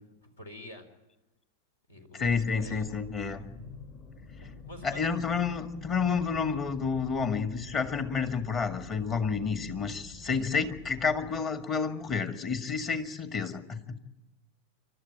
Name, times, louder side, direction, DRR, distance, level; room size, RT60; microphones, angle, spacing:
voice 1, 0.2-0.9 1.9-2.9 4.4-5.0, left 1 dB, 70° left, 7 dB, 4.0 m, -48 dB
voice 2, 2.1-3.4 4.8-14.0, left 5 dB, 30° left, 8 dB, 1.9 m, -30 dB
sound 1, 2.3-11.4, left 3 dB, 45° left, 4.5 m, -48 dB
28.5 x 12.5 x 8.8 m, 1.0 s
figure-of-eight pair, 90°, 0 cm